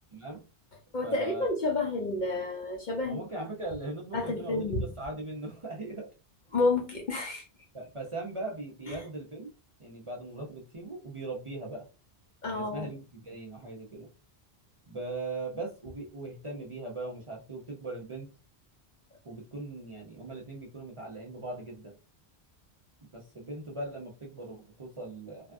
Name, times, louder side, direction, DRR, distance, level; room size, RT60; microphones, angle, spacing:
voice 1, 0.1-0.4 1.0-1.5 3.0-6.1 7.7-9.5 9.8-11.9 12.5-14.1 14.9-18.3 19.2-21.9 23.1-25.5, right 2 dB, 35° right, -2 dB, 0.5 m, -39 dB
voice 2, 0.9-3.2 4.1-4.9 6.5-7.4 8.9-9.0 12.4-12.9, left 2 dB, 55° left, 2 dB, 0.6 m, -30 dB
3.3 x 2.3 x 2.5 m, 0.31 s
omnidirectional pair, 1.1 m